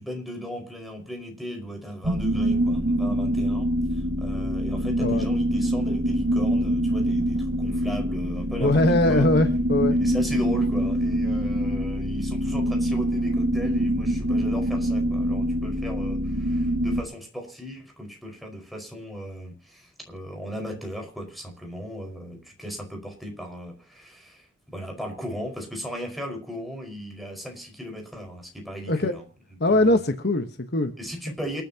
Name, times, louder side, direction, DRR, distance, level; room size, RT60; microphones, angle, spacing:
voice 1, 0.0-9.3 9.9-29.2 29.5-30.0 31.0-31.6, equal, ahead, 5.1 m, -37 dB
sound 1, 2.0-17.0, equal, 65° right, 2.0 m, -25 dB
voice 2, 8.6-10.0 28.9-29.1 29.6-30.9, left 2 dB, 50° left, 1.3 m, -21 dB
28.5 x 10.0 x 2.9 m
head